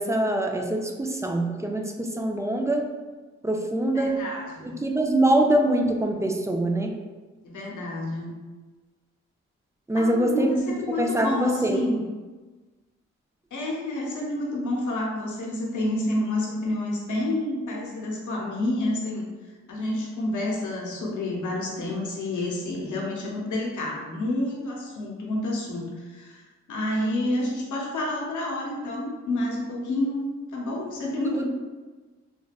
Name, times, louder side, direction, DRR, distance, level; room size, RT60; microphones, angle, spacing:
voice 1, 0.0-2.9 3.4-4.2 4.6-7.0 9.9-10.6 11.0-11.8 31.3-31.5, right 1 dB, 10° right, 3 dB, 0.3 m, -24 dB
voice 2, 3.9-4.7 7.4-8.3 10.0-12.0 13.5-19.2 19.7-31.5, left 1 dB, 85° left, -2 dB, 0.7 m, -29 dB
3.4 x 2.2 x 2.3 m, 1.3 s
cardioid pair, 55°, 29 cm